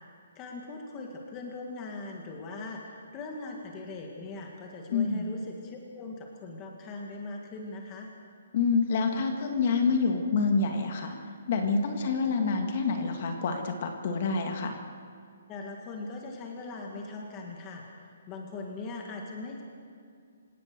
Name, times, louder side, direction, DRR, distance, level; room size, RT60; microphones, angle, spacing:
voice 1, 0.4-8.1 15.5-17.8 18.3-19.6, left 3 dB, 15° left, 1 dB, 1.8 m, -40 dB
voice 2, 4.9-5.3 8.5-11.1 11.5-14.8, left 4 dB, 35° left, 4 dB, 2.0 m, -27 dB
28.0 x 17.5 x 6.8 m, 2.3 s
hypercardioid pair, 175°, 0 cm